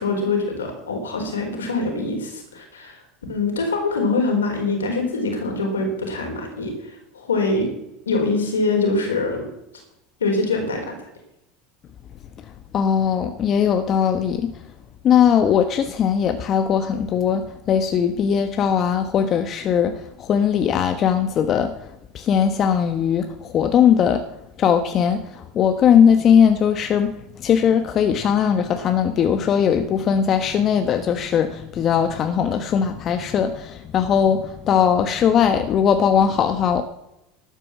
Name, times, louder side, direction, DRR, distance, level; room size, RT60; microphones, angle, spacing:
voice 1, 0.0-3.0 3.3-6.7 7.1-7.7 8.1-9.5 10.2-11.0, left 3 dB, 85° left, 2 dB, 4.1 m, -23 dB
voice 2, 12.7-14.6 15.0-24.2 24.6-36.8, left 8 dB, 40° left, 8 dB, 1.2 m, -19 dB
12.5 x 9.0 x 7.3 m, 0.85 s
hypercardioid pair, 80°, 0 cm